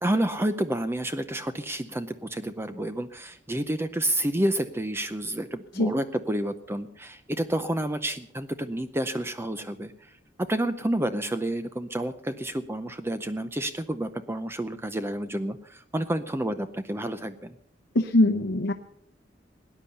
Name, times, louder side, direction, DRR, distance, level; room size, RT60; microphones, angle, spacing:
voice 1, 0.0-10.1 10.4-17.6, right 1 dB, 15° right, 10 dB, 0.6 m, -29 dB
voice 2, 17.9-18.7, left 1 dB, 70° left, 2 dB, 0.9 m, -22 dB
19.0 x 10.0 x 6.8 m, 0.71 s
head